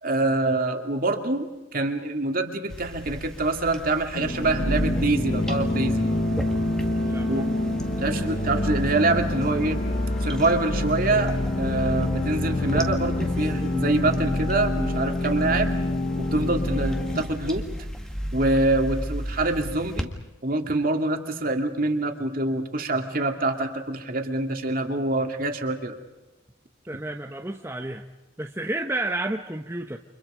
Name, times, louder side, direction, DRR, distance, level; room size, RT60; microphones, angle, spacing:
voice 1, 0.0-6.0 7.3-7.5 8.0-9.8 10.2-15.7 16.2-17.7 18.3-20.1 20.4-26.0, right 2 dB, 45° right, 4 dB, 2.6 m, -25 dB
sound 1, 2.7-20.0, equal, 5° left, 1.8 m, -33 dB
sound 2, 4.1-17.2, left 2 dB, 50° left, 5.3 m, -27 dB
voice 2, 7.1-7.6 26.9-28.0 28.4-30.0, right 2 dB, 15° right, 3 dB, 1.0 m, -31 dB
30.0 x 26.5 x 5.1 m, 1.0 s
head